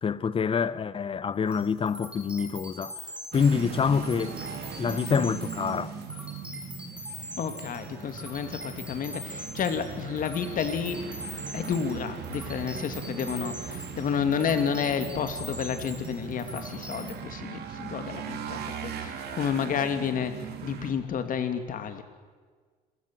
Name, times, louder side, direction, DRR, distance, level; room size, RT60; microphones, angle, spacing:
voice 1, 0.0-3.0 3.3-4.4 4.8-6.0, left 6 dB, 30° left, 0.9 m, -26 dB
sound 1, 1.5-17.1, equal, 5° right, 6.3 m, -43 dB
sound 2, 3.3-20.9, right 7 dB, 75° right, 3.0 m, -39 dB
voice 2, 7.4-11.0 11.5-22.0, left 7 dB, 55° left, 2.6 m, -30 dB
27.5 x 16.0 x 7.6 m
cardioid pair, 110°, 17 cm